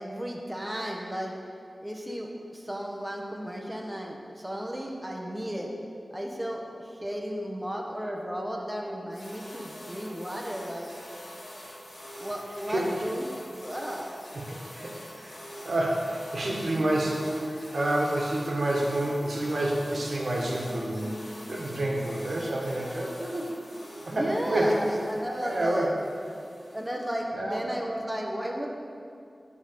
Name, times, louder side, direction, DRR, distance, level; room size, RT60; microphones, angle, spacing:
voice 1, 0.0-1.3 1.8-5.7 6.1-10.9 12.2-14.1 24.1-25.9 26.7-28.7, equal, 10° right, -1 dB, 1.1 m, -34 dB
sound 1, 9.1-27.1, equal, 65° left, 1.9 m, -45 dB
voice 2, 14.5-15.4 15.6-21.1 21.5-23.6 24.0-24.7 25.4-25.9 27.3-27.6, right 1 dB, 70° right, -2 dB, 1.6 m, -28 dB
10.0 x 3.7 x 6.9 m, 2.5 s
cardioid pair, 45°, 0 cm